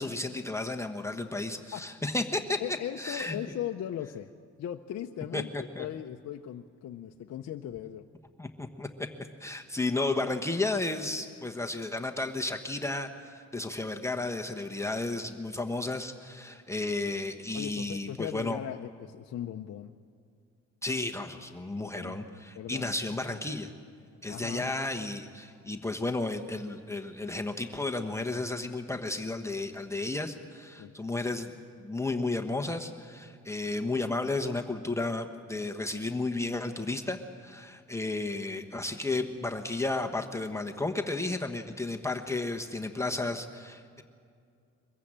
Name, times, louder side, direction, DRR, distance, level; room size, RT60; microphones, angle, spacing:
voice 1, 0.0-2.6 3.0-3.4 5.3-5.9 8.4-8.9 9.4-18.6 20.8-23.7 24.2-31.5 31.8-44.0, left 2 dB, 10° left, 3 dB, 1.2 m, -33 dB
voice 2, 1.7-2.1 2.6-4.3 4.6-8.0 17.5-19.9 21.8-22.9 24.3-24.7 30.8-30.9, left 11 dB, 60° left, 4 dB, 0.8 m, -38 dB
23.0 x 15.0 x 8.8 m, 2.3 s
cardioid pair, 90°, 30 cm